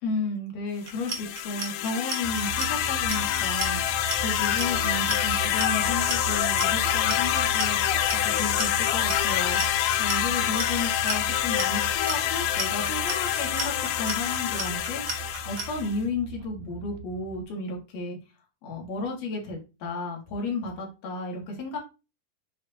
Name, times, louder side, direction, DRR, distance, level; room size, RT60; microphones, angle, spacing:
voice 1, 0.0-18.2 18.6-21.8, left 3 dB, 50° left, 0 dB, 2.8 m, -33 dB
Clock, 0.8-15.6, right 4 dB, 65° right, 1.0 m, -34 dB
sound 1, 0.9-16.0, left 12 dB, 85° left, 2.5 m, -26 dB
sound 2, 2.2-17.4, right 11 dB, 80° right, 2.8 m, -38 dB
6.8 x 4.8 x 2.9 m, 0.29 s
omnidirectional pair, 4.3 m